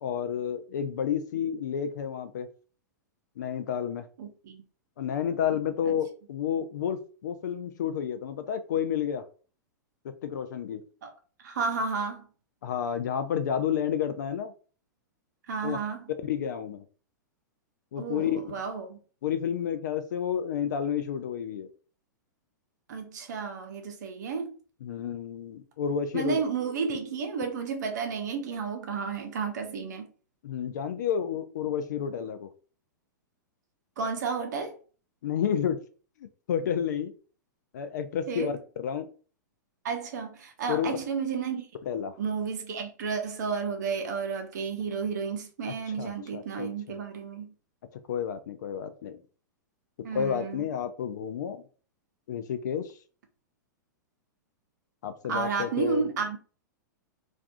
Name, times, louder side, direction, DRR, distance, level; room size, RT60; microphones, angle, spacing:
voice 1, 0.0-2.5 3.4-4.1 5.0-9.2 10.2-10.8 12.6-14.5 15.6-15.8 16.2-16.8 17.9-18.4 19.2-21.7 24.8-26.4 30.4-32.5 35.2-35.8 36.5-37.1 37.7-39.1 40.7-41.0 41.9-42.2 46.0-46.7 48.1-49.2 50.1-51.6 52.3-53.0 55.0-56.1, left 8 dB, 65° left, 0.3 m, -30 dB
voice 2, 4.2-4.6 5.9-6.0 11.0-11.1 11.4-12.3 15.5-16.0 18.0-19.0 22.9-24.6 26.1-30.1 34.0-34.8 38.3-38.6 39.8-41.7 42.2-47.5 50.0-50.6 55.3-56.4, right 5 dB, 65° right, 0.7 m, -32 dB
2.5 x 2.2 x 2.5 m
hypercardioid pair, 105°, 10 cm